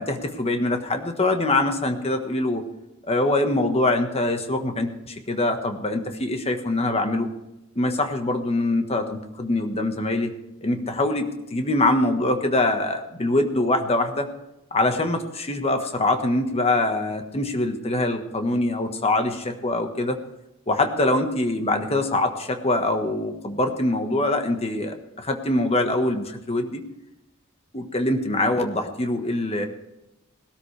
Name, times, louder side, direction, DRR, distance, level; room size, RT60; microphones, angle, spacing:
voice 1, 0.0-2.6 3.1-7.3 7.7-10.3 10.6-14.3 14.7-20.2 20.7-26.8 27.7-29.7, left 2 dB, 30° left, 6 dB, 1.4 m, -24 dB
19.0 x 13.0 x 3.4 m, 0.92 s
head